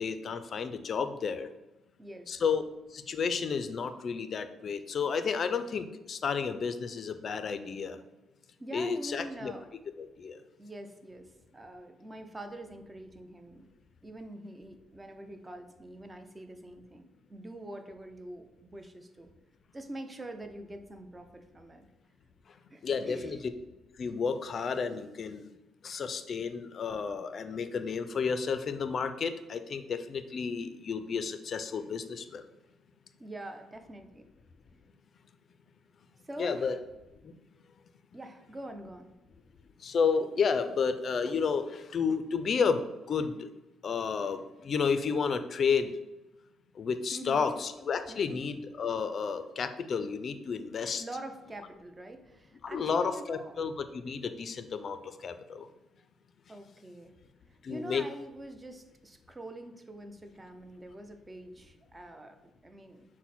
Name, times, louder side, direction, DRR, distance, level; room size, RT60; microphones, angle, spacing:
voice 1, 0.0-1.5 2.3-2.6 2.9-8.0 8.7-9.5 10.0-10.4 22.8-23.4 24.0-25.5 25.8-32.4 36.4-36.8 37.2-37.3 39.8-43.5 43.8-45.9 46.8-51.0 52.6-55.7 57.6-58.0, left 5 dB, 50° left, 10 dB, 0.4 m, -31 dB
voice 2, 2.0-2.4 8.6-9.7 10.6-13.7 14.0-19.3 19.7-21.9 22.7-23.4 33.2-34.3 36.2-36.8 38.1-39.1 47.1-47.5 48.1-48.4 51.0-53.6 56.5-57.1 57.5-63.1, right 1 dB, 20° right, 6 dB, 0.5 m, -45 dB
5.9 x 2.1 x 4.1 m, 0.99 s
cardioid pair, 90°, 0 cm